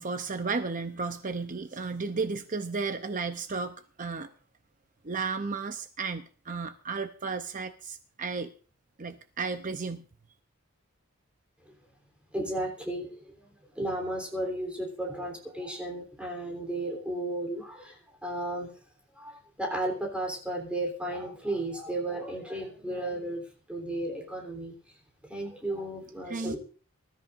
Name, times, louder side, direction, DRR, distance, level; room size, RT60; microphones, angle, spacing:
voice 1, 0.0-4.3 5.0-8.5 9.0-10.0 26.3-26.6, right 4 dB, 35° right, 8 dB, 0.7 m, -33 dB
voice 2, 12.3-13.5 13.7-18.7 19.2-23.4 23.7-24.7 25.2-26.6, right 1 dB, 5° right, 0 dB, 3.4 m, -34 dB
24.5 x 13.5 x 2.6 m, 0.39 s
head